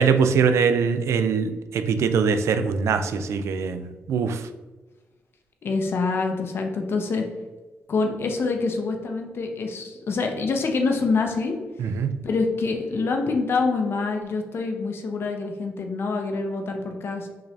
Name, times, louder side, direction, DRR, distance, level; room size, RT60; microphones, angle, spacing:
voice 1, 0.0-4.5 11.8-12.2, right 6 dB, 75° right, 9 dB, 0.4 m, -22 dB
voice 2, 5.6-7.3 7.9-11.5 12.2-17.3, left 4 dB, 55° left, 4 dB, 0.7 m, -26 dB
5.5 x 2.6 x 3.3 m, 1.2 s
cardioid pair, 115°, 5 cm